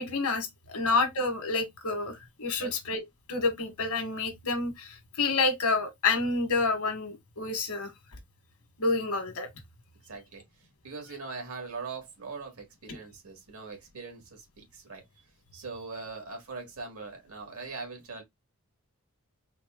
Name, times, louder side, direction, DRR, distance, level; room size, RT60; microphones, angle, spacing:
voice 1, 0.0-3.0 3.3-7.9 8.8-9.5 12.9-13.0, left 3 dB, 75° left, 1.2 m, -29 dB
voice 2, 10.0-10.4 10.8-15.0 15.5-18.2, right 4 dB, 75° right, 1.7 m, -41 dB
4.0 x 2.1 x 3.5 m
head